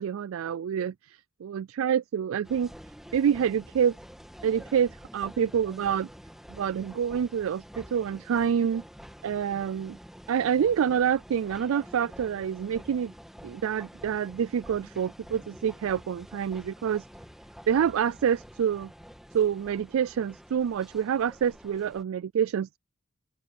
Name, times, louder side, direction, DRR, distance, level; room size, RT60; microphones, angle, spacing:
voice 1, 0.0-2.7 3.1-4.0 4.4-6.1 6.5-8.8 9.2-10.0 10.3-13.1 13.4-17.1 17.7-18.9 19.3-22.8, right 8 dB, 70° right, 0.3 m, -27 dB
sound 1, 2.4-22.0, equal, ahead, 2.3 m, -48 dB
open air
head